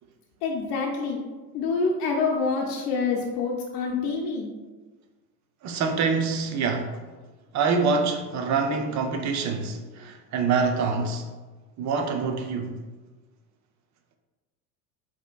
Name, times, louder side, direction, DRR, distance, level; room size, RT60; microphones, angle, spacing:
voice 1, 0.4-1.2 1.5-4.5, left 4 dB, 70° left, 0.6 m, -26 dB
voice 2, 5.6-7.0 7.5-11.2 11.8-12.7, right 4 dB, 40° right, 0.5 m, -25 dB
4.1 x 2.9 x 2.2 m
supercardioid pair, 90°, 47 cm